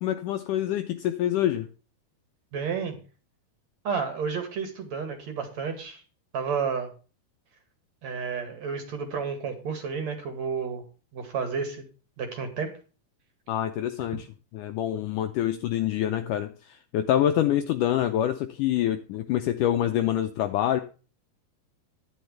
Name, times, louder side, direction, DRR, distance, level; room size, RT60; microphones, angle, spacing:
voice 1, 0.0-1.7 13.5-14.3 14.5-20.8, left 11 dB, 75° left, 7 dB, 1.9 m, -26 dB
voice 2, 2.5-3.0 3.8-6.0 6.3-6.9 8.0-10.8 11.1-11.8 12.2-12.7, right 6 dB, 50° right, 6 dB, 2.9 m, -31 dB
10.5 x 10.5 x 3.3 m, 0.36 s
omnidirectional pair, 4.4 m